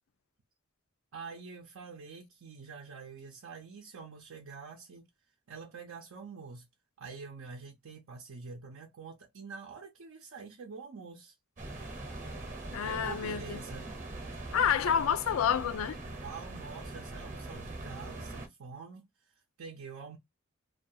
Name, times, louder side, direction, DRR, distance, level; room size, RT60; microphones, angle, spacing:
voice 1, 1.1-5.1 5.5-6.7 7.0-11.3 12.8-13.9 16.0-20.2, right 5 dB, 75° right, 0.6 m, -46 dB
sound 1, 11.6-18.5, right 2 dB, 40° right, 0.8 m, -42 dB
voice 2, 12.7-13.6 14.5-16.0, left 8 dB, 75° left, 0.4 m, -29 dB
2.4 x 2.3 x 2.6 m
head